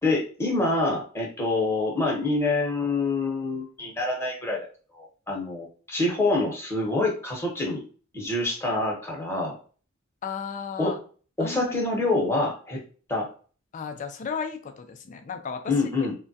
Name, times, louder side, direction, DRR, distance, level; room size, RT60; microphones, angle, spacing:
voice 1, 0.0-4.6 4.9-7.8 8.1-9.6 10.8-10.9 11.4-12.8 13.1-13.3 15.7-16.1, left 2 dB, 10° left, -2 dB, 0.9 m, -26 dB
voice 2, 10.2-11.0 11.4-11.8 13.7-16.1, left 6 dB, 35° left, 7 dB, 0.3 m, -34 dB
3.3 x 2.2 x 2.6 m, 0.39 s
head